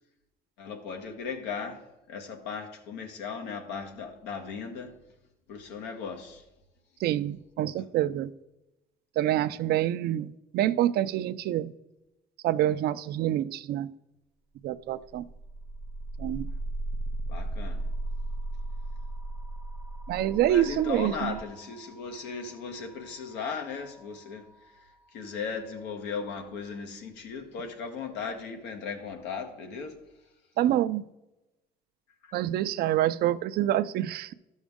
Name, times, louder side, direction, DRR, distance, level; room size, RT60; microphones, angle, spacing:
voice 1, 0.6-5.0 5.5-6.4 17.3-17.8 20.4-24.5 25.1-30.0, left 5 dB, 90° left, 1.4 m, -37 dB
voice 2, 7.0-8.3 9.2-11.7 12.4-13.9 14.6-15.2 16.2-16.5 20.1-21.4 30.6-31.0 32.3-34.3, right 12 dB, 70° right, 0.5 m, -27 dB
sound 1, 15.0-24.8, right 2 dB, 5° right, 0.3 m, -37 dB
12.5 x 6.3 x 3.6 m
cardioid pair, 110°, 17 cm